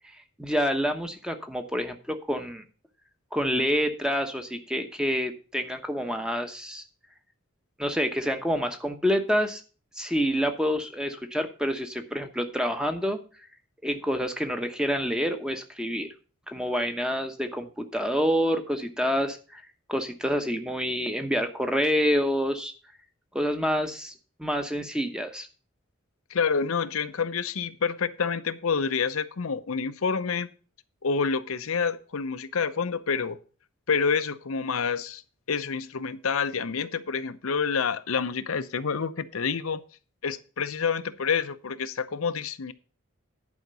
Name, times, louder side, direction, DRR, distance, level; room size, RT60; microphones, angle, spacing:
voice 1, 0.4-2.6 3.3-6.8 7.8-9.6 10.0-13.2 13.8-16.1 16.5-19.6 19.9-22.7 23.3-24.1 24.4-25.5, equal, 5° right, 6 dB, 0.9 m, -27 dB
voice 2, 26.3-30.5 31.0-33.4 33.9-35.2 35.5-39.8 40.2-42.7, left 5 dB, 85° left, 11 dB, 0.7 m, -28 dB
11.0 x 5.1 x 6.7 m, 0.37 s
head